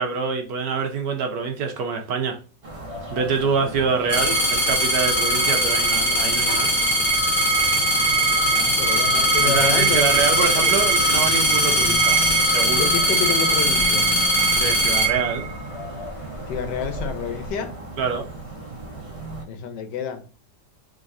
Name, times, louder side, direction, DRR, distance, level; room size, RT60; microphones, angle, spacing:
voice 1, 0.0-2.4 3.1-6.7 9.4-12.2 12.5-12.9 14.6-15.5 18.0-18.3, right 5 dB, 65° right, 1.1 m, -25 dB
sound 1, 2.6-19.4, right 2 dB, 35° right, 0.5 m, -36 dB
sound 2, 4.1-15.8 16.6-17.1, right 1 dB, 35° left, 1.0 m, -20 dB
voice 2, 8.4-11.3 12.8-14.1 16.5-17.7 19.5-20.2, left 7 dB, 75° left, 1.3 m, -29 dB
3.8 x 3.1 x 2.6 m
omnidirectional pair, 1.9 m